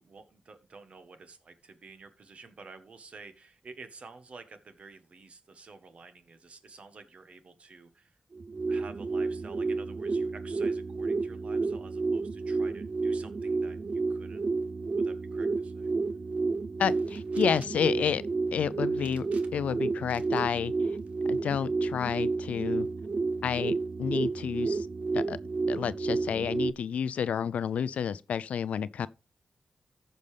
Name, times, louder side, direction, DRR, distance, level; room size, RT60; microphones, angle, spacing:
voice 1, 0.0-8.2 8.7-14.4 15.0-15.9, right 4 dB, 65° right, 1.3 m, -50 dB
sound 1, 8.3-26.7, right 3 dB, 50° right, 0.4 m, -31 dB
voice 2, 16.8-18.2 18.5-19.3 19.5-20.7 21.3-22.9 23.4-23.7 24.0-24.9 25.1-25.4 25.7-29.1, left 7 dB, 90° left, 0.4 m, -30 dB
sound 2, 16.8-17.9 19.0-19.7 20.1-20.5 21.0-21.6, right 4 dB, 80° right, 1.2 m, -55 dB
14.5 x 5.3 x 3.3 m
cardioid pair, 55°, 2 cm